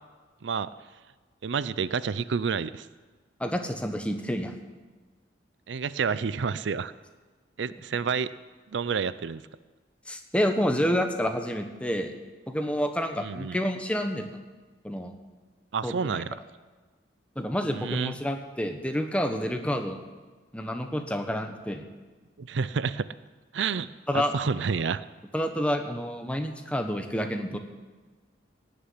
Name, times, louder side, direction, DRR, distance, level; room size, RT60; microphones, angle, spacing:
voice 1, 1.4-2.9 5.7-6.9 7.6-8.3 8.7-9.4 13.2-13.6 15.7-16.3 17.7-18.2 22.4-23.1 23.5-23.9 24.1-25.0, right 5 dB, 75° right, 16 dB, 0.5 m, -29 dB
voice 2, 3.4-4.5 10.1-12.1 12.5-14.4 14.8-15.1 15.8-16.2 17.4-20.0 20.5-21.8 24.1-24.4 25.3-27.6, equal, 5° left, 5 dB, 1.1 m, -29 dB
17.5 x 6.8 x 9.5 m, 1.3 s
head